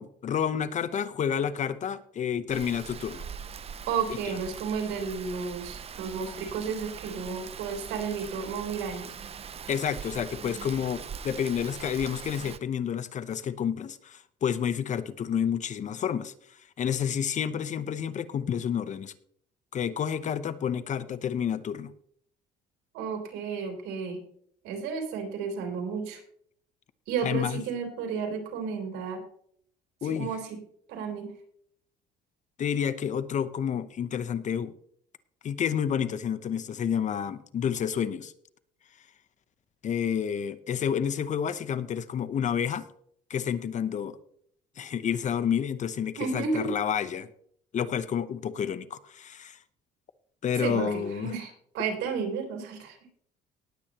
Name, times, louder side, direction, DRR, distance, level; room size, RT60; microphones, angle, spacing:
voice 1, 0.0-3.3 4.1-4.4 9.7-16.3 16.8-19.1 19.7-21.9 27.2-27.6 30.0-30.3 32.6-34.7 35.4-38.3 39.8-42.9 43.3-44.2 44.8-47.3 47.7-49.6 50.4-51.3, left 8 dB, 45° left, 14 dB, 0.9 m, -29 dB
Rain, 2.5-12.6, right 7 dB, 35° right, 0.7 m, -41 dB
voice 2, 3.9-9.1 22.9-24.2 24.6-26.2 27.1-29.2 30.0-30.6 30.9-31.3 46.2-46.7 50.6-53.0, right 5 dB, 90° right, 3 dB, 3.6 m, -32 dB
19.0 x 8.3 x 3.0 m, 0.64 s
cardioid pair, 110°, 17 cm